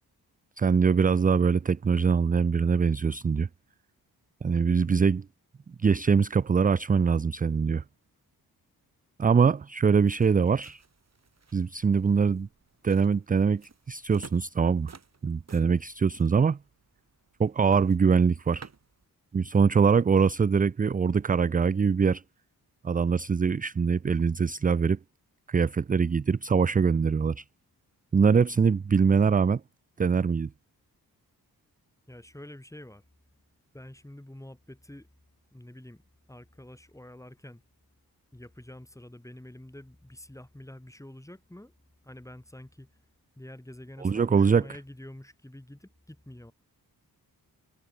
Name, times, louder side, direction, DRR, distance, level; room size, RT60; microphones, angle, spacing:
voice 1, 0.6-3.5 4.4-5.3 5.8-7.8 9.2-10.8 11.5-12.5 12.8-14.9 15.2-16.6 17.4-18.7 19.3-22.2 22.8-25.0 25.5-27.4 28.1-29.6 30.0-30.5 44.0-44.6, right 5 dB, 20° right, 0.5 m, -23 dB
sound 1, 9.9-19.1, right 5 dB, 45° right, 3.4 m, -54 dB
voice 2, 32.1-33.0 33.7-35.1 35.5-36.0 36.3-37.6 38.3-41.7 42.0-42.9 43.4-46.5, left 1 dB, 10° left, 5.8 m, -47 dB
cardioid pair, 70°, 38 cm